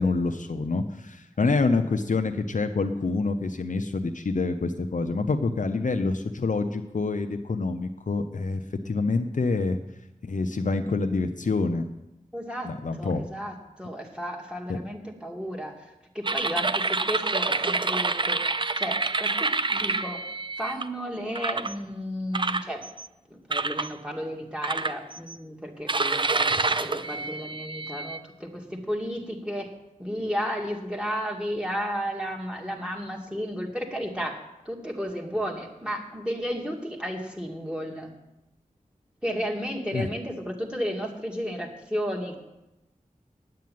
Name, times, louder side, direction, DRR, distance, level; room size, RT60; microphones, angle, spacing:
voice 1, 0.0-9.8 10.2-11.9 12.6-13.2 14.7-14.8 39.9-40.1, left 3 dB, 65° left, 6 dB, 0.8 m, -27 dB
voice 2, 12.3-12.7 13.0-15.9 16.1-18.5 18.8-20.2 20.6-22.8 23.3-29.7 30.0-38.1 39.2-42.4, equal, 5° right, 0 dB, 2.3 m, -33 dB
sound 1, 16.2-20.8 21.4-21.7 22.3-23.1 23.5-23.9 24.6-25.3 25.9-28.2, right 3 dB, 35° right, 0.5 m, -27 dB
9.0 x 8.6 x 9.4 m, 0.91 s
wide cardioid pair, 80°, 14 cm